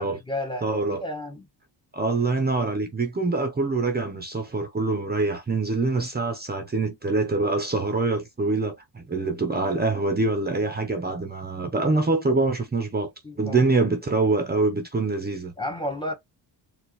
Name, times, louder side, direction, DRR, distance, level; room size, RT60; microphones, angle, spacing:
voice 1, 0.0-1.5 13.2-13.6 15.6-16.1, left 1 dB, 10° left, 1.2 m, -32 dB
voice 2, 0.6-1.0 1.9-13.1 13.4-15.5, right 3 dB, 20° right, 0.9 m, -25 dB
4.5 x 2.5 x 3.1 m
cardioid pair, 110°, 44 cm